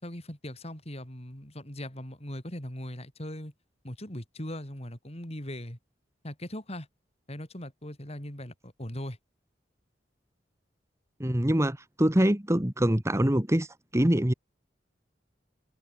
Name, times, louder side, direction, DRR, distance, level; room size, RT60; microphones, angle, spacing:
voice 1, 0.0-3.5 3.8-5.8 6.2-6.9 7.3-9.2, left 1 dB, 35° left, 6.1 m, -39 dB
voice 2, 11.2-13.7 13.9-14.3, right 1 dB, 15° right, 1.5 m, -24 dB
head